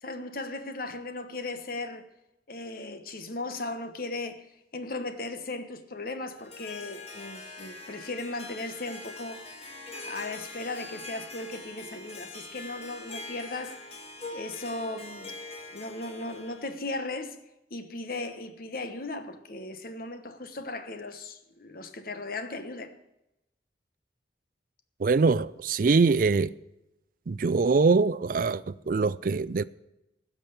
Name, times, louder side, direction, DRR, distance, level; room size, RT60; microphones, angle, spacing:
voice 1, 0.0-2.1 2.5-13.8 14.3-17.4 17.7-22.9, left 2 dB, 50° left, 1.1 m, -37 dB
Harp, 6.2-16.7, left 3 dB, 35° left, 1.7 m, -43 dB
voice 2, 25.0-26.5 27.3-29.6, right 4 dB, 50° right, 0.4 m, -23 dB
16.0 x 6.2 x 6.6 m
head